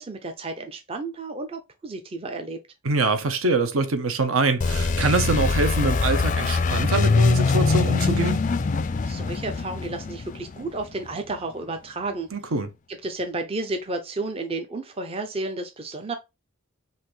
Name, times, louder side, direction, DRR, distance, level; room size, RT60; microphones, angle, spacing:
voice 1, 0.0-2.6 9.0-12.3 12.9-16.2, right 2 dB, 25° right, 0.5 m, -32 dB
voice 2, 2.8-8.4 12.3-12.7, right 3 dB, 75° right, 0.8 m, -24 dB
sound 1, 4.6-11.2, left 4 dB, 35° left, 0.3 m, -23 dB
5.6 x 2.6 x 3.1 m
head